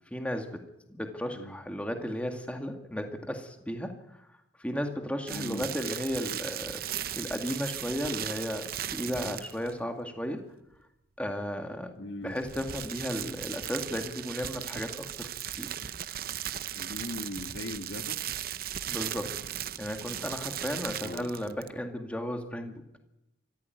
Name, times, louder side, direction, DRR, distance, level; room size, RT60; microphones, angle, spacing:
voice 1, 0.1-0.6 0.9-4.2 4.6-6.8 7.1-10.4 11.2-15.3 15.6-15.7 18.9-19.4 19.8-22.8, equal, 5° left, 4 dB, 2.1 m, -34 dB
voice 2, 5.3-5.7 11.9-12.4 16.7-18.2 21.0-21.3, left 1 dB, 85° left, 8 dB, 1.7 m, -39 dB
sound 1, 5.3-9.8 12.2-21.8, right 10 dB, 55° right, 0.7 m, -37 dB
24.0 x 15.5 x 9.2 m, 0.89 s
head